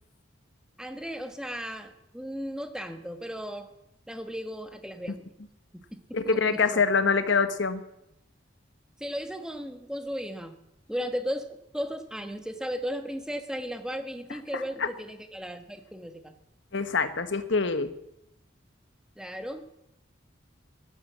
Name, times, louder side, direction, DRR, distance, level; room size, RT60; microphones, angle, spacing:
voice 1, 0.8-3.7 4.1-5.3 5.7-6.8 9.0-10.6 10.9-16.3 19.2-19.7, equal, 5° right, 7 dB, 1.2 m, -36 dB
voice 2, 6.1-7.8 14.5-14.9 16.7-17.9, left 5 dB, 65° left, 10 dB, 1.2 m, -25 dB
16.0 x 12.0 x 7.4 m, 0.84 s
head